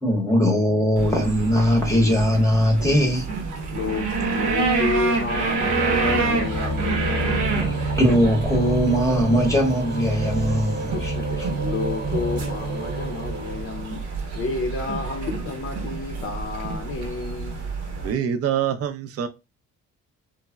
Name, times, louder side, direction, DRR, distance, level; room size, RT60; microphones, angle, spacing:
voice 1, 0.0-3.5 7.4-11.5, equal, 10° left, 0.7 m, -21 dB
sound 1, 1.0-18.1, right 3 dB, 85° right, 0.9 m, -28 dB
sound 2, 3.3-14.2, right 2 dB, 35° right, 0.8 m, -30 dB
voice 2, 3.7-7.6 10.9-14.0 14.3-17.7, left 3 dB, 45° left, 0.5 m, -31 dB
voice 3, 18.0-19.3, right 9 dB, 50° right, 0.5 m, -25 dB
3.3 x 2.0 x 2.2 m
cardioid pair, 90°, 30 cm